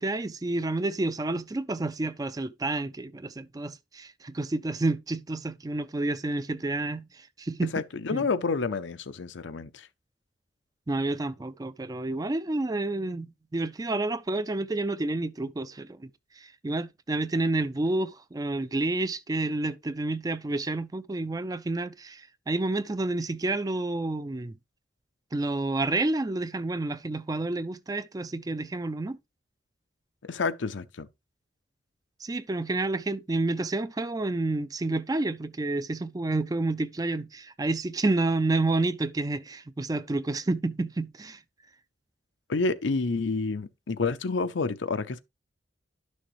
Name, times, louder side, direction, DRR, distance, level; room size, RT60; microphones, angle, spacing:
voice 1, 0.0-7.7 8.1-8.2 10.9-13.3 13.5-16.1 16.4-24.5 25.3-29.2 32.2-41.4, right 2 dB, 20° right, 0.4 m, -29 dB
voice 2, 7.7-9.9 30.3-31.1 42.5-45.2, left 4 dB, 85° left, 0.6 m, -29 dB
11.5 x 6.3 x 3.1 m
head